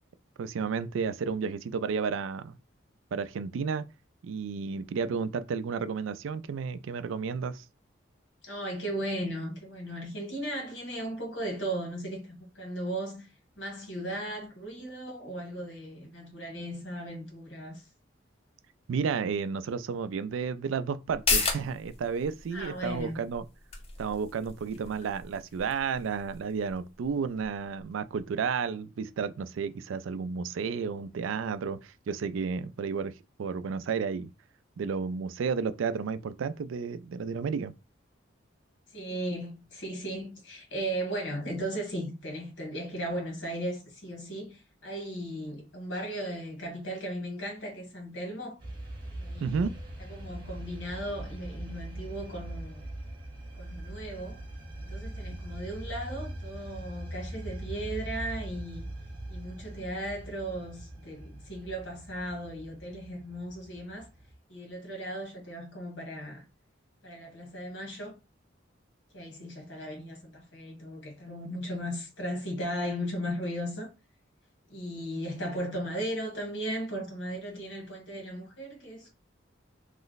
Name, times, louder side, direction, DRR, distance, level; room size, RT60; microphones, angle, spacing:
voice 1, 0.4-2.6 3.1-3.9 4.2-7.6 18.9-23.5 24.0-33.1 33.4-34.3 34.8-37.7 49.4-49.7, right 5 dB, 85° right, 0.3 m, -32 dB
voice 2, 8.4-13.3 13.6-17.8 22.5-23.2 38.9-48.6 49.2-49.7 50.0-52.9 53.6-54.4 54.8-58.9 59.3-64.1 64.5-66.5 67.0-68.2 69.1-73.9 74.7-79.1, right 1 dB, 75° left, 1.4 m, -36 dB
sound 1, 21.1-28.2 28.5-28.6, left 4 dB, 30° left, 0.5 m, -35 dB
sound 2, 48.6-64.3, right 1 dB, 25° right, 1.0 m, -41 dB
3.1 x 2.1 x 3.9 m
head